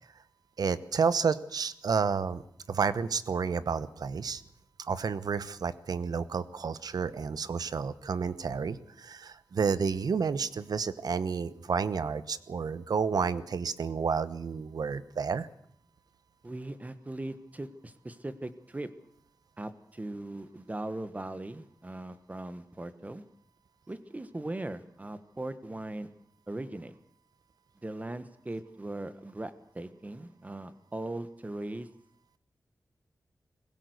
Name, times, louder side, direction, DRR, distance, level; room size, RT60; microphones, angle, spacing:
voice 1, 0.6-2.4 2.7-4.4 4.8-15.5, right 5 dB, 80° right, 15 dB, 1.0 m, -30 dB
voice 2, 16.4-18.9 19.6-23.2 23.9-26.1 26.5-26.9 27.8-31.9, right 2 dB, 25° right, 12 dB, 1.4 m, -39 dB
21.0 x 16.5 x 8.1 m, 0.67 s
wide cardioid pair, 105°, 7 cm